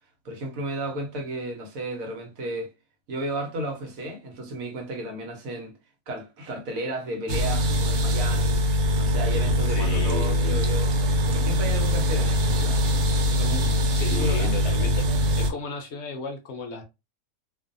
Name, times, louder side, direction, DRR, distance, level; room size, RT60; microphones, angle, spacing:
voice 1, 0.2-2.7 3.1-5.7 6.1-8.6 8.9-12.8 13.3-14.5, right 1 dB, 75° right, 1.2 m, -33 dB
sound 1, 7.3-15.5, left 1 dB, 90° right, 1.1 m, -23 dB
voice 2, 9.7-10.6 13.9-15.1 15.4-16.8, left 4 dB, 65° left, 0.7 m, -34 dB
2.5 x 2.4 x 2.5 m
omnidirectional pair, 1.5 m